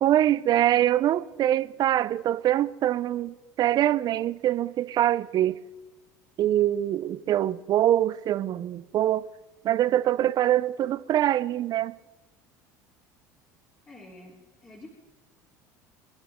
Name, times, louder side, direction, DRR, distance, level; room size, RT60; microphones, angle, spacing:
voice 1, 0.0-5.6 6.4-9.3 9.6-11.9, right 12 dB, 45° right, 0.6 m, -24 dB
voice 2, 13.9-14.9, left 2 dB, 25° left, 3.5 m, -48 dB
27.5 x 11.0 x 3.7 m
hypercardioid pair, 80°, 9 cm